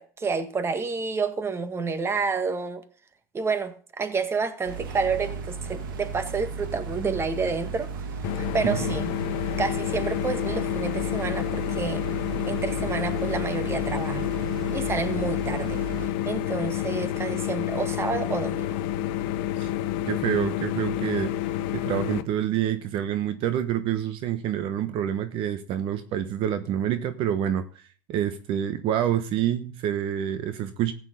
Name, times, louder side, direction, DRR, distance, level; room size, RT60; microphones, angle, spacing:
voice 1, 0.0-2.8 3.3-8.1 8.4-9.1 9.6-12.0 12.4-14.3 14.7-15.8 16.3-18.8, right 4 dB, 25° right, 1.7 m, -29 dB
sound 1, 4.6-16.1, right 5 dB, 90° right, 2.2 m, -35 dB
sound 2, 8.2-22.2, left 12 dB, 65° left, 1.1 m, -29 dB
voice 2, 20.1-21.3 21.7-27.8 28.1-30.9, right 10 dB, 55° right, 1.2 m, -27 dB
15.0 x 9.1 x 3.9 m
supercardioid pair, 105°, 11 cm